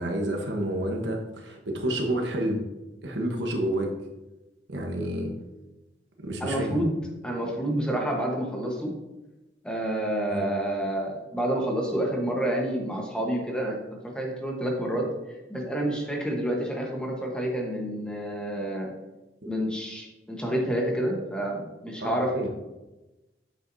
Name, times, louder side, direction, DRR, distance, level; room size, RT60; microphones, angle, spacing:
voice 1, 0.0-2.6 3.0-3.9 4.7-5.3 6.2-6.8 10.3-10.4 19.4-19.6 22.0-22.5, right 1 dB, 75° right, 2 dB, 1.2 m, -29 dB
voice 2, 6.4-7.0 7.2-8.9 9.6-15.1 15.5-18.9 19.4-22.5, right 1 dB, 5° left, 0 dB, 1.2 m, -29 dB
7.8 x 5.9 x 2.7 m, 1.0 s
head